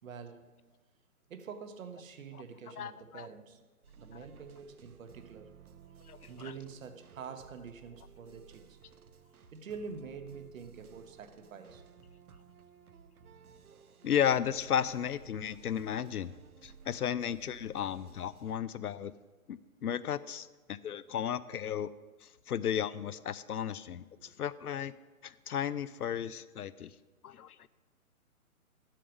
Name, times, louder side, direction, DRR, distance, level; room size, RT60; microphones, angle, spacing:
voice 1, 0.0-0.5 1.3-3.6 4.0-5.5 6.3-8.8 9.5-11.8 24.2-24.3, right 5 dB, 60° right, 1.2 m, -46 dB
voice 2, 2.8-3.3 6.1-6.2 6.4-6.5 14.0-16.3 16.6-19.1 19.5-21.9 22.2-24.9 25.2-26.9 27.2-27.7, left 9 dB, 80° left, 0.7 m, -34 dB
sound 1, 3.8-18.5, right 6 dB, 80° right, 0.9 m, -56 dB
12.0 x 7.6 x 5.1 m
hypercardioid pair, 140°, 44 cm